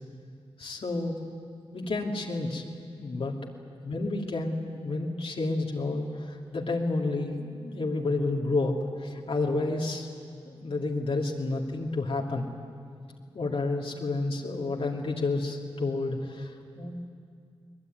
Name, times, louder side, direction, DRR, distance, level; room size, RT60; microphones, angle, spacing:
voice 1, 0.6-1.2 1.7-2.6 3.0-3.5 3.8-10.1 10.4-12.5 13.3-17.0, left 2 dB, 65° left, -1 dB, 2.8 m, -30 dB
23.5 x 20.0 x 9.4 m, 2.3 s
cardioid pair, 55°, 10 cm